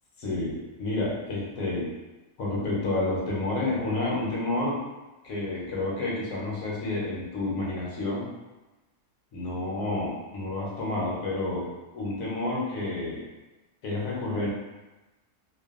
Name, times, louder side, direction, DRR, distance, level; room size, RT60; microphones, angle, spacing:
voice 1, 0.2-1.9 2.4-4.8 5.2-8.3 9.3-11.7 11.9-13.3 13.8-14.5, left 2 dB, 75° left, -4 dB, 1.1 m, -30 dB
2.5 x 2.2 x 2.4 m, 1.1 s
omnidirectional pair, 1.5 m